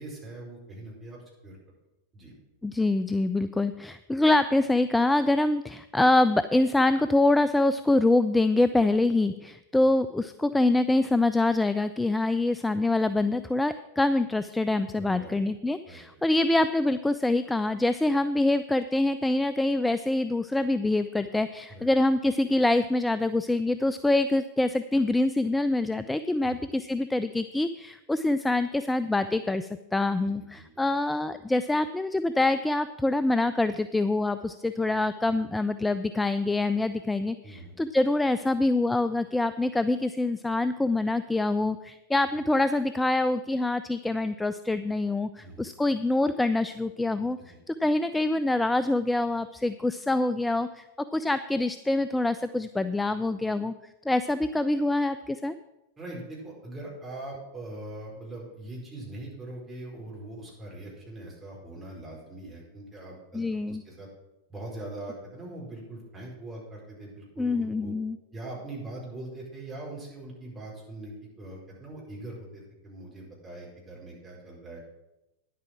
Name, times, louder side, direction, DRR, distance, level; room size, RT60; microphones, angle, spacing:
voice 1, 0.0-1.6 2.1-2.3 9.8-9.9 14.9-15.4 15.9-16.2 21.7-21.9 26.4-26.7 30.5-30.6 35.3-35.4 37.4-37.7 45.4-45.7 47.4-47.6 56.0-64.1 64.5-67.9 68.3-74.8, right 2 dB, 15° right, -4 dB, 4.6 m, -42 dB
voice 2, 2.6-47.4 47.7-50.8 51.1-53.7 54.1-55.5 63.3-63.8 67.4-68.2, left 2 dB, 5° left, 12 dB, 0.3 m, -25 dB
10.0 x 8.3 x 6.0 m, 0.97 s
figure-of-eight pair, 90°, 0 cm